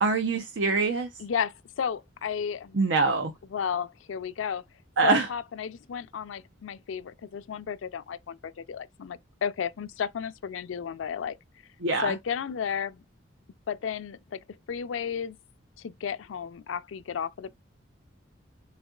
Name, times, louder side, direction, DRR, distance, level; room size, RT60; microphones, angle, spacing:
voice 1, 0.0-1.1 2.7-3.3 5.0-5.3 11.8-12.1, right 3 dB, 70° right, 0.6 m, -24 dB
voice 2, 1.2-2.8 3.5-4.6 5.0-11.4 12.0-13.0 13.7-14.4 14.7-15.4 15.8-17.5, left 7 dB, 90° left, 0.4 m, -33 dB
4.0 x 3.5 x 2.3 m
head